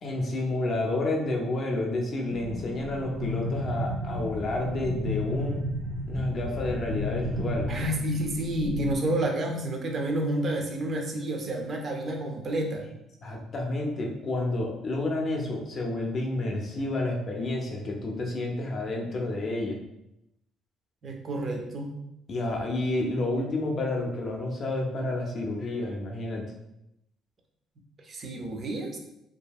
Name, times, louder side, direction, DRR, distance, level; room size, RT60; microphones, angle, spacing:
voice 1, 0.0-5.6 6.1-7.7 13.2-19.8 22.3-26.5, left 2 dB, 35° left, 0 dB, 0.5 m, -30 dB
sound 1, 2.3-9.0, left 1 dB, 80° right, 0.7 m, -33 dB
voice 2, 7.7-12.8 21.0-21.9 28.0-29.0, right 1 dB, 30° right, 2 dB, 0.4 m, -30 dB
2.7 x 2.6 x 2.3 m, 0.84 s
cardioid pair, 160°, 0 cm